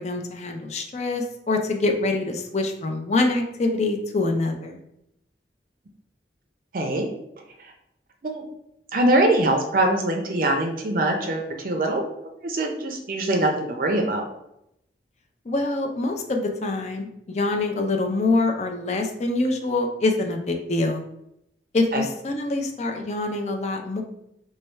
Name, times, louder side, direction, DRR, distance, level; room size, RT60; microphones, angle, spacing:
voice 1, 0.0-4.8 15.5-21.0 21.7-24.0, left 2 dB, 40° left, 4 dB, 0.4 m, -25 dB
voice 2, 6.7-7.1 8.2-8.4 8.9-12.0 12.4-14.2 21.9-22.0, right 1 dB, 50° right, 3 dB, 0.5 m, -23 dB
3.2 x 2.3 x 4.3 m, 0.80 s
head